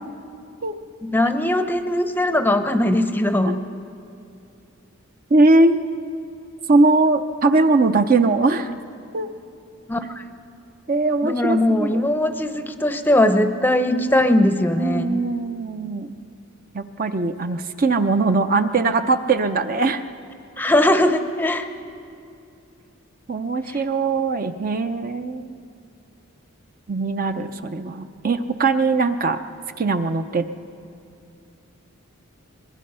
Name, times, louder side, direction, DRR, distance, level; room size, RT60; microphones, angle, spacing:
voice 1, 1.0-3.6 9.9-10.2 11.2-15.2 20.6-21.7 23.7-23.8, left 1 dB, 10° left, 8 dB, 0.7 m, -20 dB
voice 2, 5.3-5.8 6.7-8.7 9.1-9.3 10.9-12.0 14.8-16.1 16.7-20.0 23.3-25.6 26.9-29.4 29.8-30.4, right 3 dB, 40° right, 8 dB, 0.6 m, -20 dB
23.5 x 22.0 x 5.5 m, 2.5 s
head